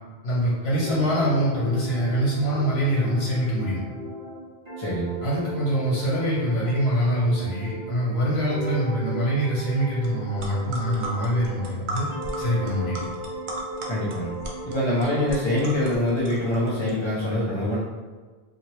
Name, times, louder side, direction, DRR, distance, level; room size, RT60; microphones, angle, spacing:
voice 1, 0.2-3.8 5.2-12.1 12.4-13.0, equal, 85° left, -8 dB, 1.3 m, -24 dB
sound 1, 0.8-8.0 8.4-11.8 12.1-15.7, right 1 dB, 30° right, 1.0 m, -36 dB
voice 2, 4.8-5.2 13.9-14.3 14.7-17.8, left 1 dB, 40° left, -7 dB, 0.5 m, -24 dB
sound 2, 10.0-10.1 10.4-16.9, right 1 dB, 60° right, 0.6 m, -36 dB
2.7 x 2.4 x 3.0 m, 1.4 s
omnidirectional pair, 1.0 m